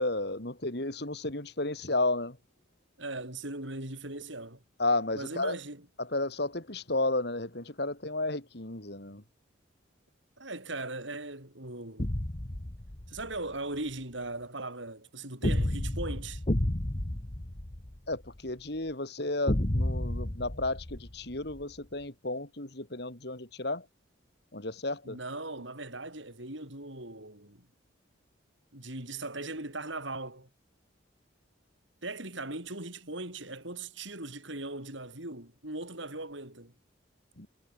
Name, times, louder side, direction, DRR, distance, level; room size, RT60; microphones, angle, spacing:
voice 1, 0.0-2.4 4.8-5.6 6.0-9.2 18.1-23.8 24.5-25.2 37.4-37.5, left 2 dB, 55° left, 2.7 m, -32 dB
voice 2, 3.0-4.6 5.1-5.9 10.4-12.1 13.1-16.4 25.0-27.7 28.7-30.5 32.0-36.7, right 2 dB, 70° right, 7.7 m, -39 dB
sound 1, 12.0-13.4 15.4-18.4 19.5-21.6, left 1 dB, 35° left, 1.5 m, -31 dB
head